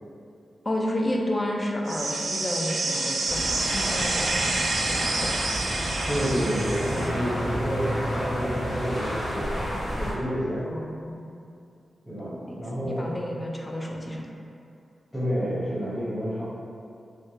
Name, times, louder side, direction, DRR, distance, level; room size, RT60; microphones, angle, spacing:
voice 1, 0.7-5.3 6.9-7.5 10.7-11.3 12.2-14.3, left 1 dB, 25° left, -1 dB, 0.3 m, -31 dB
sound 1, 1.9-7.1, right 3 dB, 80° right, 0.3 m, -28 dB
sound 2, 3.3-10.1, equal, 70° left, 0.7 m, -30 dB
voice 2, 6.1-10.6 12.0-13.1 15.1-16.4, equal, 5° left, -14 dB, 0.8 m, -29 dB
3.2 x 2.1 x 2.7 m, 2.5 s
wide cardioid pair, 115°, 0 cm